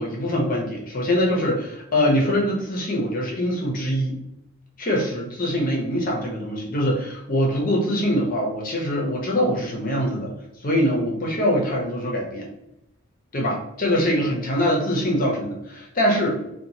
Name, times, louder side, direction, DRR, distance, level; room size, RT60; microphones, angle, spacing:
voice 1, 0.0-4.2 4.8-10.3 10.6-12.5 13.3-16.4, equal, 40° left, -1 dB, 0.7 m, -23 dB
2.9 x 2.3 x 2.7 m, 0.83 s
head